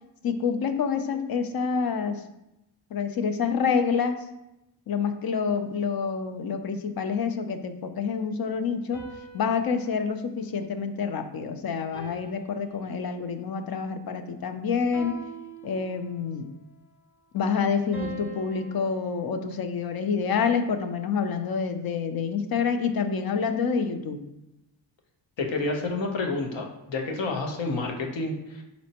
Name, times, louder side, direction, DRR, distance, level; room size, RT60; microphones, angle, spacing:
voice 1, 0.2-2.2 2.9-4.2 4.9-9.0 9.3-15.2 15.6-16.5 17.3-24.3, left 6 dB, 55° left, 8 dB, 0.5 m, -27 dB
sound 1, 8.9-11.3 11.9-13.4 14.9-16.4 17.9-20.2, right 1 dB, 25° left, 1.2 m, -45 dB
voice 2, 25.4-28.6, left 3 dB, 70° left, 2 dB, 0.9 m, -29 dB
4.2 x 4.1 x 2.8 m, 0.90 s
wide cardioid pair, 130°, 46 cm